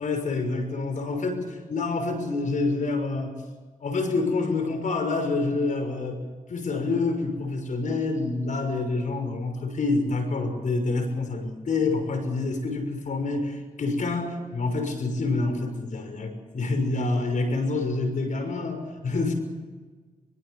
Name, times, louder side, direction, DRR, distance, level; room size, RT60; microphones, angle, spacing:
voice 1, 0.0-3.4 3.8-6.2 6.5-19.3, left 3 dB, 65° left, 6 dB, 6.2 m, -27 dB
24.0 x 23.5 x 7.0 m, 1.4 s
cardioid pair, 70°, 14 cm